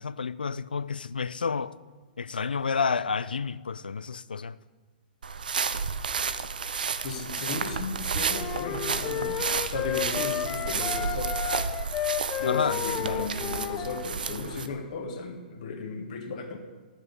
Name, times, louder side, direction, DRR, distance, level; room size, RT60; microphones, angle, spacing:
voice 1, 0.0-1.7 2.2-4.6 12.5-12.8, left 5 dB, 80° left, 0.4 m, -30 dB
sound 1, 5.2-14.7, right 6 dB, 70° right, 0.6 m, -31 dB
voice 2, 7.0-11.4 12.4-16.6, left 4 dB, 55° left, 1.6 m, -35 dB
sound 2, 8.3-14.1, left 12 dB, 25° left, 0.5 m, -32 dB
13.5 x 6.2 x 5.4 m
figure-of-eight pair, 120°, 5 cm